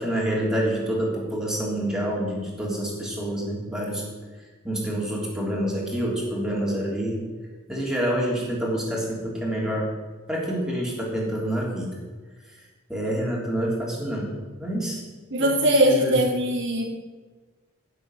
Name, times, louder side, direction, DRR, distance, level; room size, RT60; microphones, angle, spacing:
voice 1, 0.0-4.0 4.6-7.2 7.7-9.9 10.3-11.9 12.9-14.3 14.6-15.0 15.4-16.1, right 1 dB, 5° right, -4 dB, 3.4 m, -27 dB
voice 2, 15.3-17.1, right 1 dB, 55° right, 2 dB, 1.5 m, -21 dB
16.0 x 7.2 x 6.5 m, 1.3 s
head